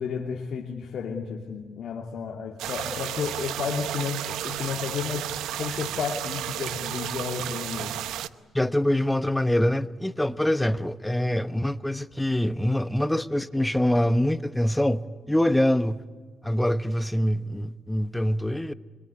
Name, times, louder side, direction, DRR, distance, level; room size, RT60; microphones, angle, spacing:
voice 1, 0.0-8.0, left 6 dB, 60° left, 2.5 m, -32 dB
sound 1, 2.6-8.3, right 12 dB, 85° right, 0.8 m, -33 dB
voice 2, 8.5-16.0 16.4-18.7, left 1 dB, 5° left, 1.0 m, -24 dB
25.0 x 23.0 x 9.8 m
cardioid pair, 90°, 0 cm